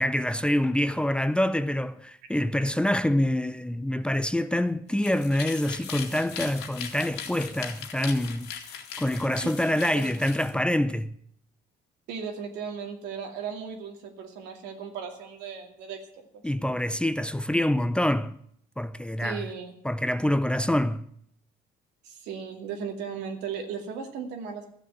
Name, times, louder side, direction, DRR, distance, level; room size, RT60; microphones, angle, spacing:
voice 1, 0.0-8.5 9.0-11.1 16.4-18.3 18.8-19.5 19.8-21.0, left 1 dB, 5° left, 0.6 m, -26 dB
sound 1, 4.9-10.5, left 8 dB, 85° left, 2.2 m, -39 dB
voice 2, 12.1-16.4 19.2-19.7 22.0-24.6, right 6 dB, 90° right, 2.4 m, -36 dB
14.5 x 7.2 x 9.3 m
cardioid pair, 110°, 17 cm